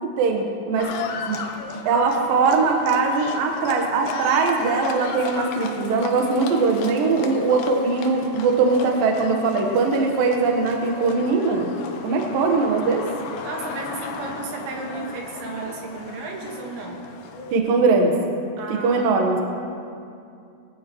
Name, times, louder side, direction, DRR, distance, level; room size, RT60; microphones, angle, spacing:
voice 1, 0.0-0.9 1.3-1.4 1.9-11.8 12.0-13.1 17.5-18.1 18.7-19.4, right 4 dB, 65° right, 2 dB, 2.5 m, -21 dB
Livestock farm animals working animals, 0.8-17.6, left 5 dB, 75° left, 2.2 m, -35 dB
voice 2, 13.4-17.0 18.6-19.2, right 3 dB, 85° right, -1 dB, 4.1 m, -33 dB
21.0 x 15.0 x 3.1 m, 2.4 s
omnidirectional pair, 5.2 m